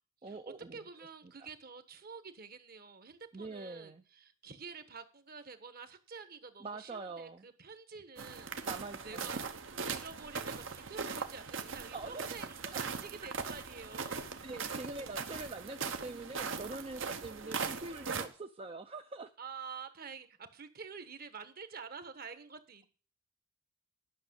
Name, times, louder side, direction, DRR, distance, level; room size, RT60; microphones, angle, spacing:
voice 1, 0.2-0.8 1.4-1.5 3.3-4.0 6.6-7.4 8.6-9.4 11.9-12.2 12.6-12.8 14.4-19.3, right 3 dB, 25° right, 7 dB, 0.5 m, -44 dB
voice 2, 0.7-8.5 9.0-14.3 14.8-14.9 19.4-22.9, right 5 dB, 45° right, 10 dB, 1.3 m, -48 dB
sound 1, 8.2-18.3, right 5 dB, 65° right, 1.1 m, -40 dB
11.0 x 6.2 x 8.0 m, 0.38 s
head